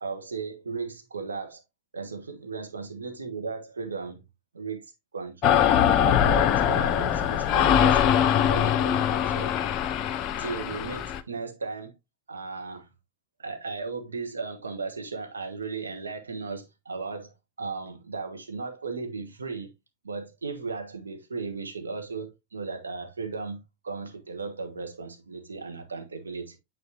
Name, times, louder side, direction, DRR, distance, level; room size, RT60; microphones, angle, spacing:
voice 1, 0.0-1.6 1.9-4.2 4.5-4.8 5.1-5.6 6.0-9.5 10.4-11.9 12.3-12.9 13.4-19.7 20.0-26.6, right 4 dB, 75° right, 1.3 m, -36 dB
sound 1, 5.4-11.2, left 10 dB, 35° left, 0.6 m, -22 dB
9.3 x 4.2 x 2.9 m
figure-of-eight pair, 90°, 0 cm